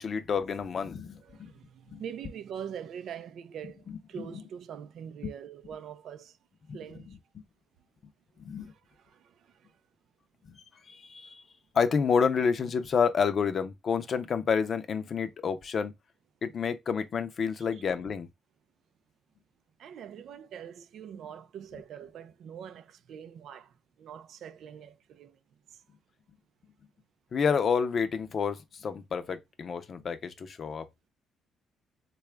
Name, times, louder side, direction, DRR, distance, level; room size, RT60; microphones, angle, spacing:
voice 1, 0.0-1.5 1.9-2.0 5.2-5.3 6.7-6.8 8.4-8.7 10.9-11.4 11.7-15.9 16.4-18.3 27.3-30.9, left 6 dB, 50° left, 0.6 m, -29 dB
voice 2, 1.2-6.4 6.7-7.2 8.6-9.8 19.8-25.4 25.7-25.8, right 8 dB, 70° right, 0.4 m, -44 dB
4.1 x 2.3 x 3.3 m
cardioid pair, 90°, 0 cm